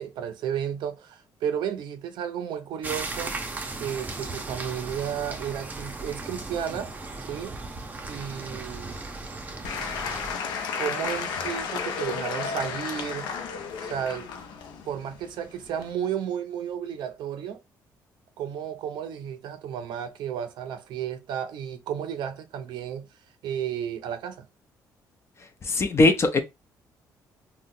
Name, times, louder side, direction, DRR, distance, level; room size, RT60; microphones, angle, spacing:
voice 1, 0.0-3.4 3.8-6.9 7.3-7.6 8.1-9.0 10.8-13.3 13.8-14.3 14.9-17.6 18.4-23.1 23.4-24.5, right 9 dB, 75° right, 0.5 m, -33 dB
sound 1, 2.8-10.3, right 3 dB, 20° right, 0.6 m, -36 dB
Applause / Crowd, 9.6-15.9, left 6 dB, 90° left, 0.5 m, -33 dB
voice 2, 25.6-26.4, left 2 dB, 35° left, 0.6 m, -20 dB
3.7 x 2.2 x 2.6 m
cardioid pair, 90°, 8 cm